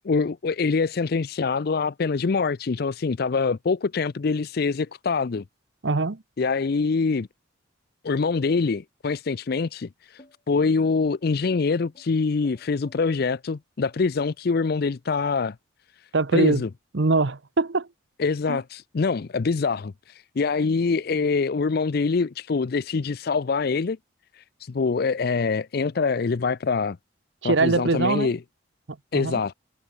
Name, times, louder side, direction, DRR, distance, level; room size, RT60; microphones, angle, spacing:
voice 1, 0.0-5.4 6.4-7.3 8.0-15.6 16.3-16.7 18.2-24.0 24.3-27.0 27.4-28.4 29.1-29.5, left 4 dB, 50° left, 0.5 m, -25 dB
voice 2, 5.8-6.2 16.1-16.6 16.9-17.9 18.5-18.6 27.4-28.3 29.1-29.4, right 3 dB, 65° right, 0.9 m, -22 dB
sound 1, 10.2-15.5, left 1 dB, 30° left, 6.0 m, -53 dB
head